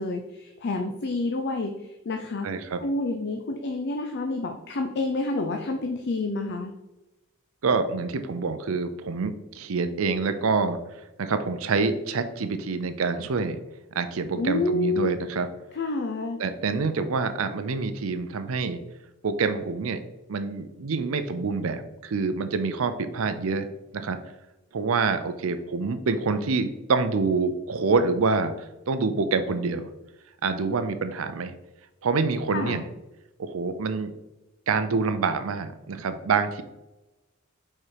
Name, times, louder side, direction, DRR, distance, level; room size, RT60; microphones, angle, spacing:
voice 1, 0.0-2.5 2.8-6.7 14.4-15.2 15.7-16.4 32.5-32.8, left 2 dB, 55° left, 4 dB, 0.5 m, -28 dB
voice 2, 2.4-2.8 7.6-13.6 13.9-15.5 16.4-18.8 19.2-20.0 20.3-23.7 23.9-24.2 24.7-29.9 30.4-31.5 32.0-32.9 33.4-34.1 34.7-36.6, right 4 dB, 75° right, 10 dB, 0.5 m, -26 dB
4.9 x 4.3 x 4.6 m, 1.0 s
head